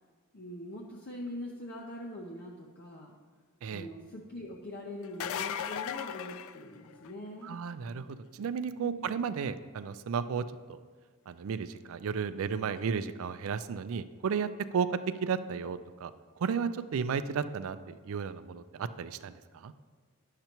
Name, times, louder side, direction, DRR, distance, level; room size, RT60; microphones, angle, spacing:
voice 1, 0.3-3.1 3.7-7.6 8.8-9.0, left 1 dB, 45° left, -1 dB, 0.7 m, -43 dB
sound 1, 5.0-7.3 12.8-12.9 14.7-14.8, left 9 dB, 70° left, 0.3 m, -37 dB
voice 2, 7.4-10.8 11.3-14.9 15.2-16.1 16.4-19.7, right 6 dB, 70° right, 13 dB, 0.4 m, -34 dB
10.5 x 6.6 x 3.0 m, 1.5 s
head